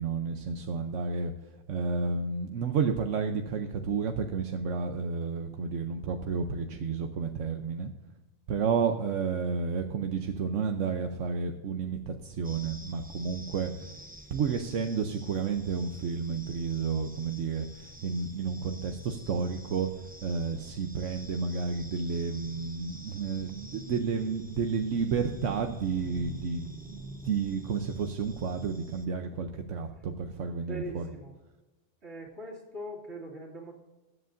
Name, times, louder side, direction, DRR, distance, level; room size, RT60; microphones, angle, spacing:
voice 1, 0.0-1.3 1.7-7.9 8.5-13.9 14.3-19.9 20.2-31.1, right 5 dB, 80° right, 5 dB, 1.1 m, -31 dB
sound 1, 12.4-29.1, right 1 dB, 10° right, 0.7 m, -47 dB
voice 2, 30.7-31.3 32.0-33.7, equal, 60° right, -3 dB, 2.7 m, -41 dB
20.5 x 8.0 x 2.5 m, 1.1 s
omnidirectional pair, 1.3 m